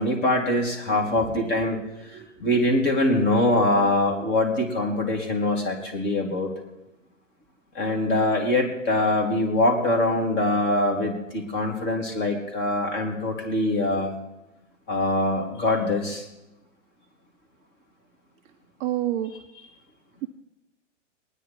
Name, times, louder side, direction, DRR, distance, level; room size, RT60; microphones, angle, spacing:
voice 1, 0.0-1.8 2.4-6.5 7.8-14.2 14.9-16.2, left 1 dB, 30° left, 1 dB, 3.4 m, -23 dB
voice 2, 2.0-2.3 18.8-19.3, right 13 dB, 20° right, 6 dB, 0.4 m, -29 dB
22.0 x 9.8 x 4.7 m, 0.96 s
hypercardioid pair, 115°, 38 cm